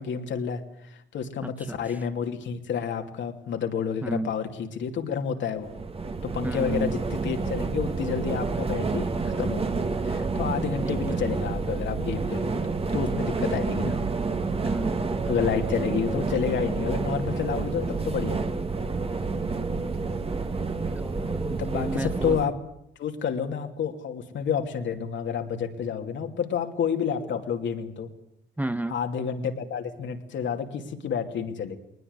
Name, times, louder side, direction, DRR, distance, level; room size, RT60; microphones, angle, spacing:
voice 1, 0.0-5.7 6.2-9.8 10.0-12.6 12.9-14.0 14.7-14.8 15.2-18.5 21.4-22.6 23.0-28.1 28.9-31.8, left 7 dB, 70° left, 5 dB, 2.7 m, -30 dB
voice 2, 1.4-1.8 4.0-4.3 6.4-7.0 10.8-11.2 14.6-15.2 20.9-22.4 28.6-29.0, right 1 dB, 10° right, 11 dB, 1.0 m, -33 dB
sound 1, 5.6-22.5, right 4 dB, 30° right, 1.8 m, -29 dB
20.0 x 20.0 x 8.2 m, 0.80 s
cardioid pair, 90°, 20 cm